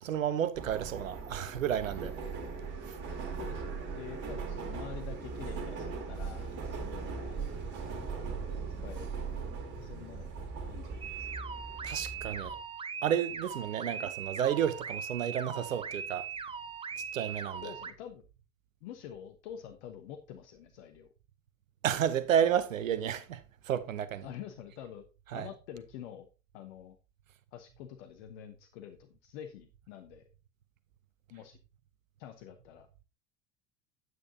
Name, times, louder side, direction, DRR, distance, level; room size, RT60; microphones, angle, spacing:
voice 1, 0.0-2.2 11.8-12.6 13.0-16.3 17.1-17.7 21.8-24.3 25.3-25.5, right 9 dB, 75° right, 0.8 m, -31 dB
Subway metro underground, 0.5-12.6, right 5 dB, 45° right, 2.2 m, -39 dB
voice 2, 3.4-7.4 8.8-11.3 17.6-18.2 18.8-21.1 24.2-25.1 25.3-26.3 26.5-27.0 27.5-30.3 31.3-31.6 32.2-32.9, left 10 dB, 55° left, 1.0 m, -47 dB
sound 1, 11.0-17.9, right 6 dB, 15° right, 0.6 m, -40 dB
9.3 x 8.6 x 2.7 m
figure-of-eight pair, 70°, 40 cm